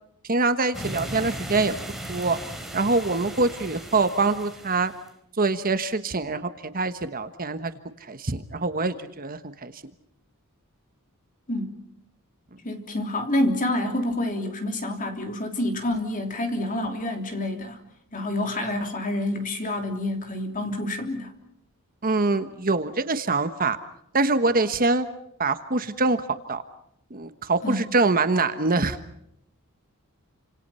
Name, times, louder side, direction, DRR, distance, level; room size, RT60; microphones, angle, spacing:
voice 1, 0.3-1.7 2.1-2.4 2.7-4.9 5.4-7.7 8.1-9.7 22.0-23.8 24.1-25.1 25.4-26.2 26.5-26.6 27.1-29.0, right 3 dB, 40° right, 10 dB, 1.3 m, -24 dB
sound 1, 0.7-5.1, right 1 dB, ahead, 3.5 m, -37 dB
voice 2, 12.6-17.8 18.1-21.3 27.6-27.9, left 1 dB, 40° left, 5 dB, 3.2 m, -28 dB
29.0 x 26.5 x 5.7 m, 0.73 s
head